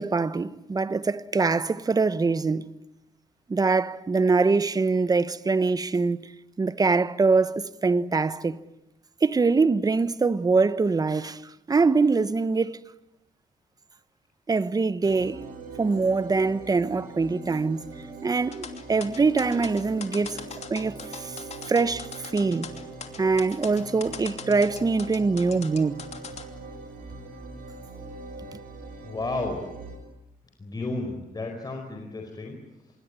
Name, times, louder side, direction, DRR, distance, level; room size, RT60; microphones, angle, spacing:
voice 1, 0.0-2.7 3.5-6.3 6.6-8.6 9.2-12.8 14.5-17.9 18.2-20.4 20.7-22.7 23.2-26.0, right 4 dB, 25° right, 1.1 m, -24 dB
sound 1, 15.0-30.0, right 3 dB, 75° right, 6.9 m, -42 dB
sound 2, 18.5-26.5, left 6 dB, 45° left, 2.9 m, -40 dB
voice 2, 29.0-29.6 30.6-32.6, left 2 dB, 25° left, 4.7 m, -32 dB
26.5 x 23.0 x 9.8 m
cardioid pair, 115°, 15 cm